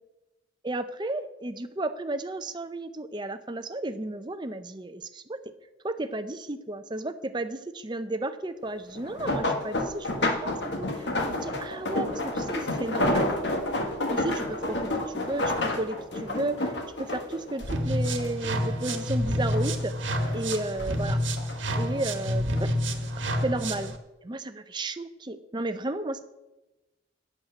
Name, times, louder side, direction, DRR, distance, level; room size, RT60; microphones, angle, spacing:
voice 1, 0.6-5.4 5.8-13.3 14.1-16.7 17.0-19.9 20.3-21.2 21.8-22.7 23.4-23.9 24.2-26.2, right 2 dB, 25° right, 10 dB, 0.6 m, -33 dB
sound 1, 8.9-18.5 18.9-19.8 20.2-21.6 22.3-22.6 23.0-23.1, left 1 dB, 65° left, 1.5 m, -30 dB
sound 2, 17.6-24.0, equal, 85° right, 1.2 m, -28 dB
9.1 x 7.4 x 6.3 m, 1.0 s
head